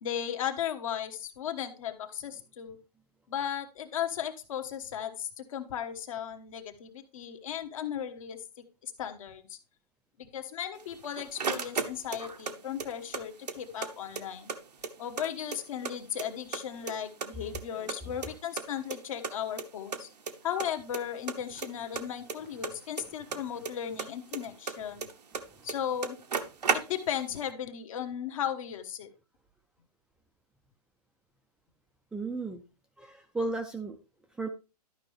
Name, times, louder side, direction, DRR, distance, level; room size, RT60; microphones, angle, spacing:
voice 1, 0.0-2.8 3.3-9.6 10.2-14.5 15.0-20.1 20.4-25.1 25.6-26.2 26.7-29.1, left 9 dB, 55° left, 6 dB, 1.2 m, -36 dB
sound 1, 10.8-12.5 12.8-13.9 14.2-14.3 14.5-15.9 16.2-16.9 17.2-18.6 18.9-19.0 19.2-19.3 19.6-19.7 19.9-20.3 20.6-21.0 21.3-23.7 24.0-25.4 25.7-25.8 26.0-27.2, right 5 dB, 85° right, 1.1 m, -33 dB
voice 2, 32.1-32.6 33.0-34.0 34.4-34.5, right 3 dB, 5° right, 4 dB, 0.4 m, -34 dB
12.0 x 5.3 x 3.3 m, 0.31 s
hypercardioid pair, 130°, 21 cm